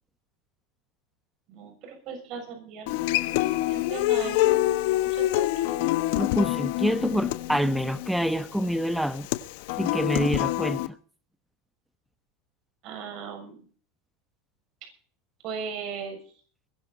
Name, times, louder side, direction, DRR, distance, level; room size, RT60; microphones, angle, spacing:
voice 1, 1.5-3.1 3.5-4.7 5.0-6.0 12.8-13.6 15.4-16.2, right 6 dB, 45° right, 6.9 m, -38 dB
Human voice / Acoustic guitar, 2.9-10.9, left 17 dB, 65° left, 1.1 m, -26 dB
voice 2, 6.2-9.3 9.8-11.0, equal, ahead, 1.2 m, -26 dB
21.5 x 12.0 x 4.3 m
supercardioid pair, 145°, 0 cm